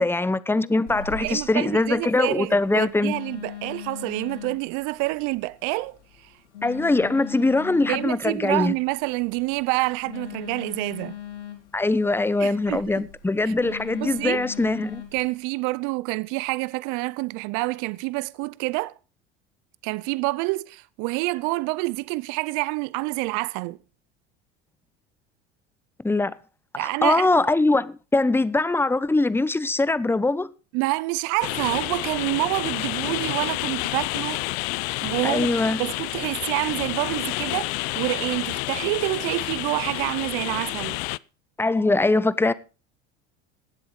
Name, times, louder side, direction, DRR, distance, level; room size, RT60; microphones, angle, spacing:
voice 1, 0.0-3.1 6.6-8.7 11.7-15.0 26.0-26.3 26.8-30.5 35.2-35.8 41.6-42.5, left 2 dB, 5° left, 0.8 m, -22 dB
Telephone, 0.9-15.2, left 9 dB, 90° left, 2.7 m, -41 dB
voice 2, 1.2-6.3 7.9-11.1 12.4-13.1 13.4-13.5 14.0-14.4 15.1-18.9 19.8-23.8 26.8-27.3 30.7-34.4 35.0-35.5 35.8-41.0, right 23 dB, 60° right, 0.7 m, -27 dB
sound 1, 31.4-41.2, left 24 dB, 65° left, 0.5 m, -29 dB
18.5 x 7.9 x 4.8 m
hypercardioid pair, 80°, 34 cm